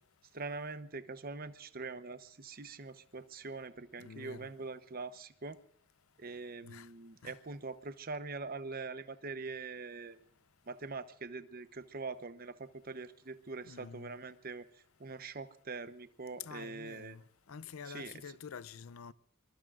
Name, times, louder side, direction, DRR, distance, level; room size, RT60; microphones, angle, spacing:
voice 1, 0.3-5.6 6.2-10.2 10.7-17.2 17.9-18.1, right 3 dB, 45° right, 0.9 m, -43 dB
voice 2, 4.0-4.5 6.6-6.9 7.2-7.4 13.6-14.1 16.4-17.2 17.5-19.1, left 6 dB, 80° left, 0.6 m, -47 dB
24.0 x 23.0 x 2.5 m
head